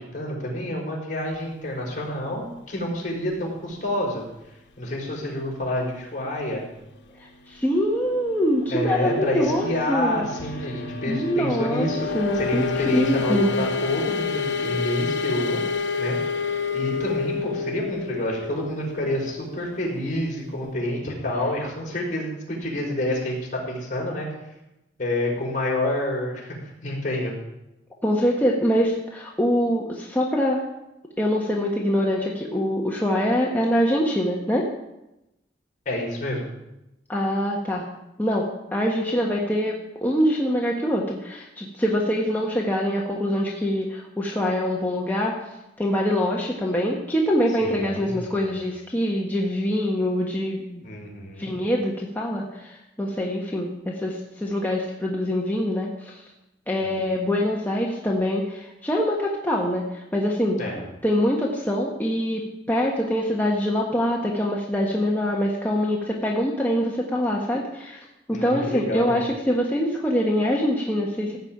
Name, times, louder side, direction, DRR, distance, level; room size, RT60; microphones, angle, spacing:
voice 1, 0.0-4.2 4.8-6.6 8.7-15.6 16.0-16.2 16.7-24.3 25.0-26.5 26.8-27.3 35.8-36.5 47.6-48.4 50.8-51.5 56.8-56.9 60.6-60.8 68.3-69.2, left 1 dB, 45° left, -2 dB, 5.0 m, -28 dB
voice 2, 7.5-10.2 11.1-11.9 12.1-12.6 12.9-13.6 28.0-30.6 31.2-34.7 37.1-37.8 38.2-45.3 45.8-50.8 51.4-56.2 56.7-60.6 61.0-68.0 68.3-71.4, equal, 10° left, -3 dB, 1.4 m, -24 dB
sound 1, 7.8-20.3, left 5 dB, 85° left, 1.1 m, -29 dB
16.0 x 5.5 x 8.8 m, 0.90 s
head